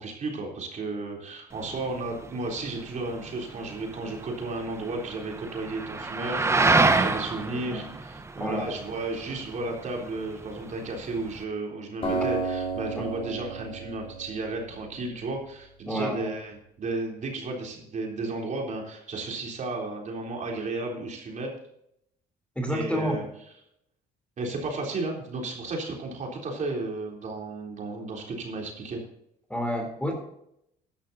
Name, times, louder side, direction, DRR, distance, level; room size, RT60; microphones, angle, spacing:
voice 1, 0.0-21.5 22.7-23.2 24.4-29.0, right 2 dB, 45° right, 0 dB, 3.7 m, -33 dB
sound 1, 1.5-11.4, right 3 dB, 15° right, 1.0 m, -29 dB
voice 2, 7.5-7.9 8.4-8.7 15.9-16.2 22.5-23.2 29.5-30.1, equal, 5° left, 3 dB, 3.5 m, -29 dB
Acoustic guitar, 12.0-15.2, right 3 dB, 35° left, 4.6 m, -32 dB
13.5 x 12.0 x 2.8 m, 0.75 s
cardioid pair, 110°, 17 cm